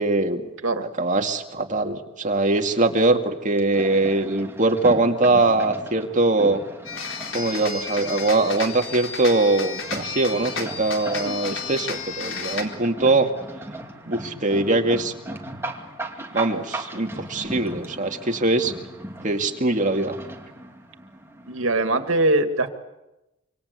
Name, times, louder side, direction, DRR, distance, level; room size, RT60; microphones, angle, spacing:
voice 1, 0.0-0.4 1.0-6.6 7.3-13.3 14.1-15.1 16.3-18.7 19.2-20.2, right 2 dB, 40° right, 4 dB, 2.3 m, -22 dB
sound 1, 2.3-22.1, right 1 dB, 10° right, 2.5 m, -38 dB
sound 2, 6.8-12.6, left 5 dB, 70° left, 4.1 m, -32 dB
voice 2, 21.5-22.7, right 2 dB, 75° right, 8 dB, 2.3 m, -22 dB
26.5 x 25.5 x 8.3 m, 0.97 s
head